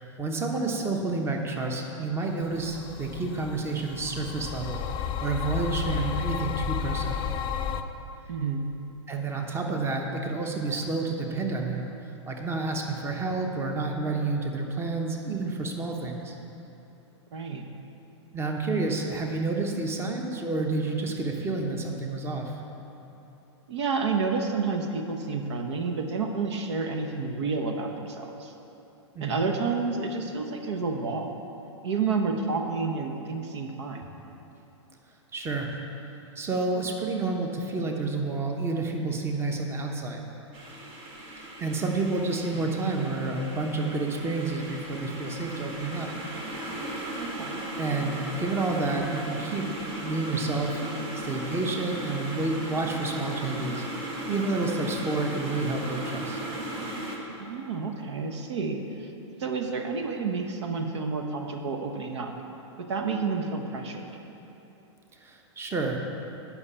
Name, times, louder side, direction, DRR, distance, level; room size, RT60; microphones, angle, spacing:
voice 1, 0.2-7.3 9.1-11.9 12.3-16.3 18.3-22.6 29.1-29.5 35.3-35.7 36.3-40.2 41.3-46.1 47.8-49.7 50.0-50.8 51.1-53.9 54.3-56.4 65.2-66.0, right 3 dB, 15° right, 2 dB, 1.0 m, -29 dB
sound 1, 2.6-7.8, left 8 dB, 30° left, 0.5 m, -32 dB
voice 2, 8.3-8.6 17.3-17.7 23.7-28.5 29.2-31.4 31.8-34.0 47.1-47.6 57.4-59.1 59.4-62.3 62.8-64.1, right 4 dB, 70° right, 4 dB, 1.0 m, -30 dB
sound 2, 40.5-57.2, right 1 dB, 35° right, 1.5 m, -36 dB
9.6 x 5.9 x 6.8 m, 3.0 s
hypercardioid pair, 115°, 15 cm